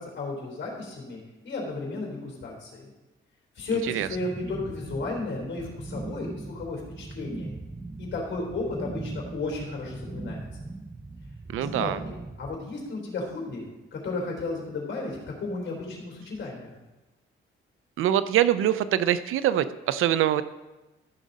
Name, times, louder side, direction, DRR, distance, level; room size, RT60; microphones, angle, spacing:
voice 1, 0.0-2.9 3.6-7.5 8.0-10.5 11.6-12.1 12.4-13.6 13.9-16.7, left 3 dB, 60° left, -1 dB, 3.9 m, -34 dB
sound 1, 4.0-12.6, right 2 dB, 10° right, 0.4 m, -39 dB
voice 2, 11.5-12.0 18.0-20.4, right 11 dB, 80° right, 14 dB, 0.5 m, -24 dB
14.0 x 6.3 x 4.1 m, 1.1 s
cardioid pair, 120°, 21 cm